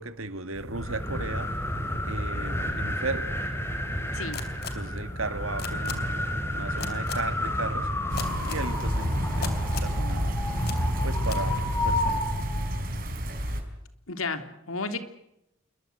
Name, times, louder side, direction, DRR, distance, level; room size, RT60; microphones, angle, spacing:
voice 1, 0.0-1.5 2.0-3.3 4.7-6.3 6.5-7.9 8.4-10.4 11.0-12.3, right 3 dB, 85° right, 2.1 m, -35 dB
sound 1, 0.6-12.7, left 1 dB, 10° left, 3.9 m, -31 dB
sound 2, 4.3-4.7 5.6-5.9 6.8-7.1 8.2-8.6 9.4-9.9 10.6-10.8 11.2-11.4, left 6 dB, 50° left, 3.6 m, -35 dB
sound 3, 8.1-13.6, equal, 45° right, 4.8 m, -29 dB
voice 2, 14.1-15.0, left 3 dB, 90° left, 3.1 m, -32 dB
28.5 x 22.5 x 8.0 m
head